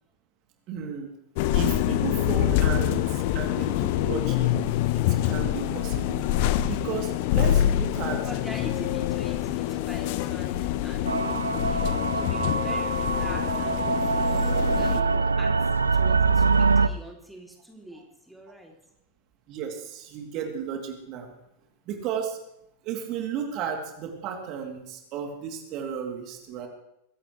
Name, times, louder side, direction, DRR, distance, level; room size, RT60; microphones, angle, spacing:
voice 1, 0.7-1.1 1.5-4.7 4.9-6.2 6.6-8.3 19.5-21.3 21.9-22.4 22.8-26.7, right 7 dB, 40° right, 2 dB, 3.0 m, -34 dB
sound 1, 1.4-15.0, left 12 dB, 50° left, 0.8 m, -26 dB
voice 2, 7.6-15.5 15.9-18.7, equal, 5° right, 0 dB, 3.0 m, -44 dB
sound 2, 11.1-16.9, right 4 dB, 75° right, 0.5 m, -24 dB
23.0 x 15.5 x 3.3 m, 0.81 s
figure-of-eight pair, 90°, 0 cm